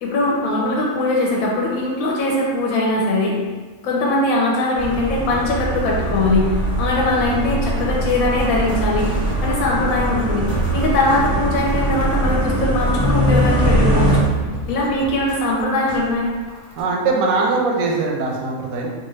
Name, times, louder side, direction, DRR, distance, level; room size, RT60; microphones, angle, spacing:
voice 1, 0.0-3.4 3.8-9.1 9.4-14.3 14.7-16.3, left 2 dB, 85° left, -3 dB, 1.0 m, -21 dB
sound 1, 4.8-14.2, right 1 dB, 25° left, 0.5 m, -21 dB
sound 2, 7.4-16.8, left 2 dB, 50° left, 0.8 m, -37 dB
voice 2, 16.8-18.9, right 3 dB, 85° right, -1 dB, 1.0 m, -21 dB
3.1 x 2.3 x 3.1 m, 1.3 s
omnidirectional pair, 1.4 m